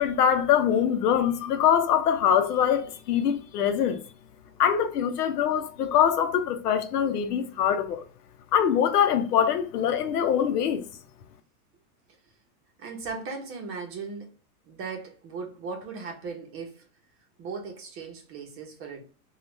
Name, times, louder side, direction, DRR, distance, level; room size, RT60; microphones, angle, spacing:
voice 1, 0.0-4.0 4.6-8.0 8.5-10.9, left 8 dB, 90° left, 0.7 m, -23 dB
voice 2, 12.8-14.3 14.6-16.9 17.4-19.0, right 4 dB, 30° right, 0.8 m, -37 dB
3.1 x 2.4 x 3.0 m
supercardioid pair, 135°, 45 cm